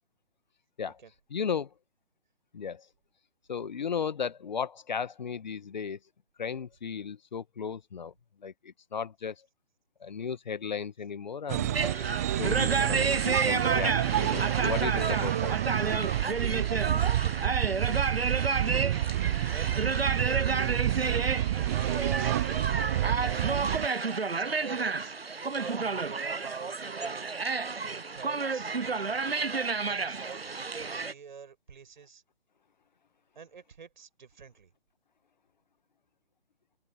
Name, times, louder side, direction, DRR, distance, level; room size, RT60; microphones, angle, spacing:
voice 1, 1.3-1.7 2.5-2.9 3.5-6.0 6.4-8.1 8.4-9.4 10.0-11.8 12.2-15.5, left 6 dB, 50° left, 1.4 m, -35 dB
sound 1, 11.5-23.9, right 13 dB, 15° right, 0.6 m, -29 dB
sound 2, 11.7-31.1, right 4 dB, 90° right, 0.7 m, -31 dB
voice 2, 18.6-19.0 19.5-21.2 21.6-25.1 25.5-27.3 27.8-29.4 29.7-32.2 33.4-34.7, right 6 dB, 55° right, 7.7 m, -47 dB
figure-of-eight pair, 140°, 29 cm